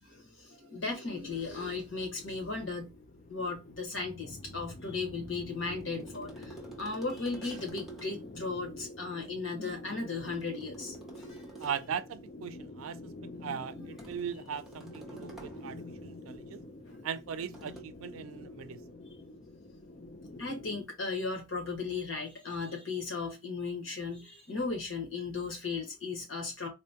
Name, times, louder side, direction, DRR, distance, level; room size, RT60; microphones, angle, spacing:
voice 1, 0.0-2.9 3.3-11.4 13.5-13.9 16.9-17.0 20.3-26.7, left 4 dB, 65° left, 1.4 m, -36 dB
sound 1, 1.2-20.8, left 2 dB, 40° left, 0.5 m, -47 dB
sound 2, 5.5-8.3 10.3-12.0 14.0-15.8 17.5-17.8, right 3 dB, ahead, 0.7 m, -50 dB
voice 2, 11.6-13.0 13.4-16.6 17.0-18.8, right 7 dB, 90° right, 0.4 m, -39 dB
4.1 x 2.2 x 2.8 m
head